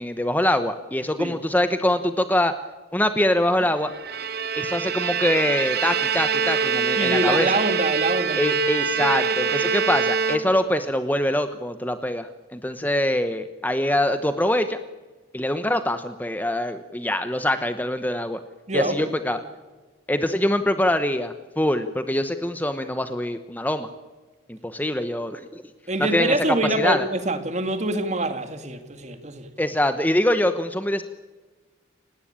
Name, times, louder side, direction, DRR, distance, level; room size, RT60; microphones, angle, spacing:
voice 1, 0.0-2.5 2.9-3.9 4.6-7.5 8.4-14.8 15.3-18.4 18.7-19.4 20.1-23.9 24.5-25.6 26.0-26.3 26.7-27.1 29.6-31.0, left 1 dB, 10° left, 0.9 m, -24 dB
Bowed string instrument, 3.9-10.8, right 6 dB, 50° right, 1.1 m, -24 dB
voice 2, 7.0-8.5 18.7-19.2 25.9-29.5, right 2 dB, 35° right, 2.2 m, -25 dB
29.5 x 18.0 x 8.8 m
head